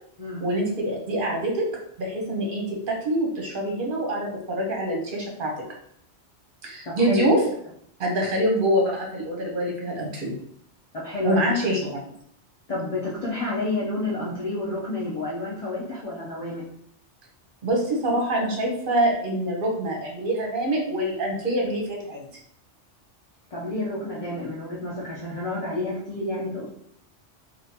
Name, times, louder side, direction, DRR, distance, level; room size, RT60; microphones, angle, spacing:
voice 1, 0.4-1.7 2.0-5.5 6.6-7.4 8.0-10.4 11.2-11.8 17.6-22.2, right 1 dB, 50° right, -1 dB, 1.0 m, -25 dB
voice 2, 6.8-7.3 10.9-11.4 12.7-16.6 23.5-26.7, left 2 dB, 40° left, -5 dB, 0.6 m, -30 dB
3.7 x 2.4 x 2.7 m, 0.67 s
omnidirectional pair, 1.2 m